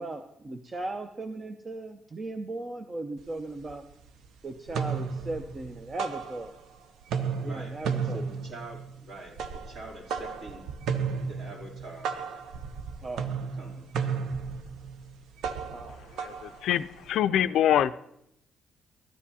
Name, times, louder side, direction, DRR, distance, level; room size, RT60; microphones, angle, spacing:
voice 1, 0.0-3.8 4.4-6.6 7.4-8.2 13.0-13.3 15.7-16.0, right 2 dB, 35° right, 0.6 m, -37 dB
sound 1, 3.2-3.3 3.6-4.3 4.6-6.8 7.0-17.2, right 6 dB, 80° right, 0.6 m, -34 dB
voice 2, 7.4-10.7 11.3-12.1 13.5-14.2, right 1 dB, 55° right, 3.1 m, -45 dB
voice 3, 16.1-17.9, left 11 dB, 80° left, 0.3 m, -25 dB
14.0 x 9.8 x 2.8 m
cardioid pair, 90°, 0 cm